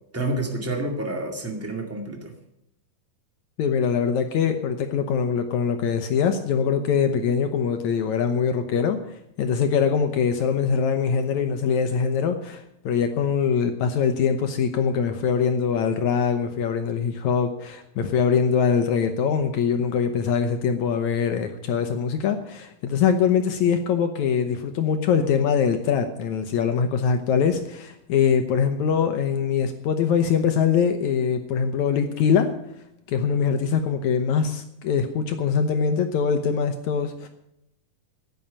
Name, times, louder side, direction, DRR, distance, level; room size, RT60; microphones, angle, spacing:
voice 1, 0.1-2.3, right 2 dB, 5° right, 2 dB, 1.0 m, -29 dB
voice 2, 3.6-9.0 9.4-32.5 33.1-37.3, left 6 dB, 70° left, 7 dB, 1.9 m, -23 dB
11.0 x 9.3 x 8.7 m, 0.80 s
omnidirectional pair, 4.2 m